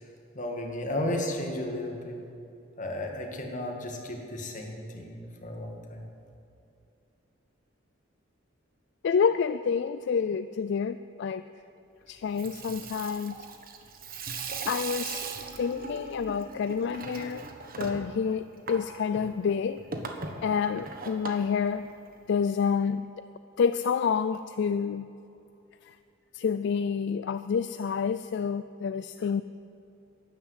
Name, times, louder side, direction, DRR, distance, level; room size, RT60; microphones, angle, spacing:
voice 1, 0.3-2.2 2.8-6.0, left 1 dB, 40° left, 1 dB, 2.0 m, -34 dB
voice 2, 9.0-11.4 12.1-13.4 14.7-15.2 15.6-17.4 17.8-19.8 20.4-21.9 22.3-23.1 23.6-25.1 25.9-26.0 26.3-29.4, left 6 dB, 60° left, 12 dB, 0.4 m, -28 dB
Water tap faucet / Sink (filling or washing), 12.2-22.4, right 4 dB, 50° right, 1.3 m, -40 dB
12.0 x 11.0 x 8.1 m, 2.7 s
head